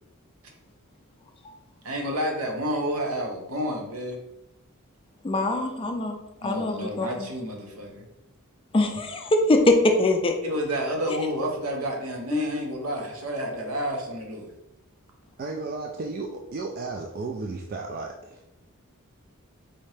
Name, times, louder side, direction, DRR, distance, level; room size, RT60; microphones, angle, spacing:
voice 1, 1.8-4.2 6.4-8.0 10.4-14.5, equal, 80° right, 1 dB, 0.9 m, -30 dB
voice 2, 5.2-7.3 8.7-10.4 12.3-12.4, left 2 dB, 25° left, 4 dB, 0.4 m, -23 dB
voice 3, 15.4-18.4, right 3 dB, 45° right, 1 dB, 0.3 m, -34 dB
4.2 x 2.7 x 3.3 m, 0.89 s
head